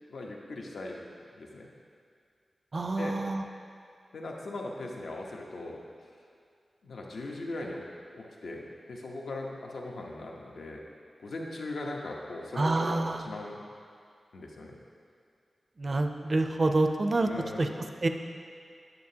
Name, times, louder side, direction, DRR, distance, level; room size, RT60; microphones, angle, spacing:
voice 1, 0.1-1.0 1.4-1.7 3.0-3.2 4.1-5.8 6.8-7.9 8.1-10.8 11.2-13.6 14.3-14.8 17.2-17.8, left 2 dB, 85° left, -1 dB, 0.8 m, -39 dB
voice 2, 2.7-3.4 12.6-13.3 15.8-17.3 17.6-17.7 18.0-18.1, right 2 dB, 40° right, 6 dB, 0.4 m, -27 dB
9.3 x 6.9 x 2.8 m, 2.3 s
wide cardioid pair, 140°, 0 cm